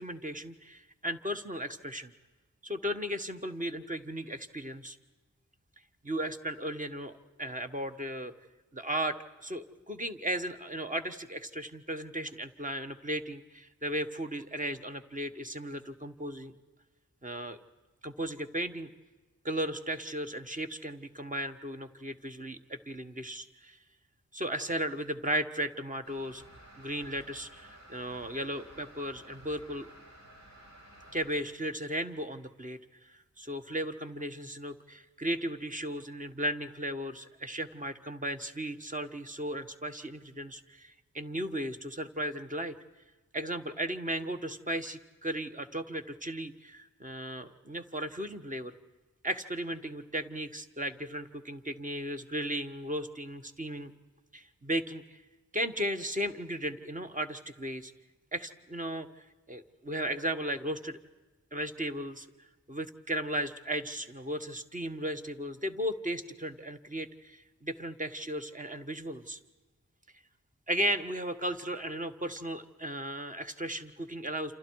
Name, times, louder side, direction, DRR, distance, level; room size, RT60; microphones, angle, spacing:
voice 1, 0.0-2.1 2.6-5.0 6.0-8.3 8.7-16.5 17.2-17.6 18.0-18.9 19.4-23.8 24.3-26.4 26.8-29.9 31.1-42.7 43.3-48.7 49.2-53.9 54.3-55.2 55.5-57.9 58.3-61.0 61.5-62.3 62.7-69.4 70.7-74.6, equal, 25° right, 7 dB, 1.3 m, -36 dB
sound 1, 26.0-31.4, right 1 dB, 65° right, 6.8 m, -54 dB
28.5 x 28.0 x 4.7 m, 1.2 s
wide cardioid pair, 100°, 29 cm